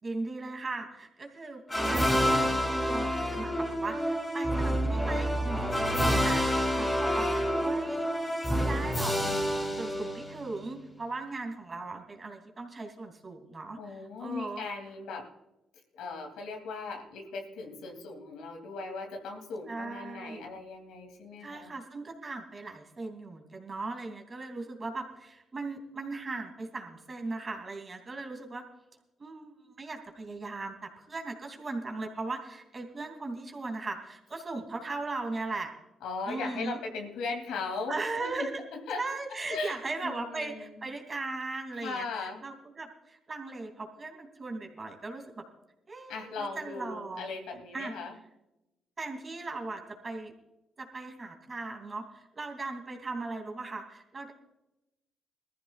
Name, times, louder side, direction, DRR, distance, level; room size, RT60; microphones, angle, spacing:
voice 1, 0.0-2.5 2.8-8.1 8.5-9.2 9.8-14.6 19.7-20.5 21.4-28.6 29.2-35.7 36.3-36.8 37.9-38.6 39.0-45.5 45.9-47.3 47.7-47.9 49.0-50.3 50.8-54.3, right 3 dB, 30° right, 3 dB, 2.9 m, -38 dB
sound 1, 1.7-10.6, equal, 15° left, 4.0 m, -28 dB
voice 2, 13.8-15.3 16.0-21.7 36.0-39.0 39.5-40.8 41.8-42.4 46.1-48.2, left 4 dB, 90° left, 3 dB, 2.9 m, -38 dB
20.5 x 14.5 x 2.5 m, 0.94 s
cardioid pair, 90°, 0 cm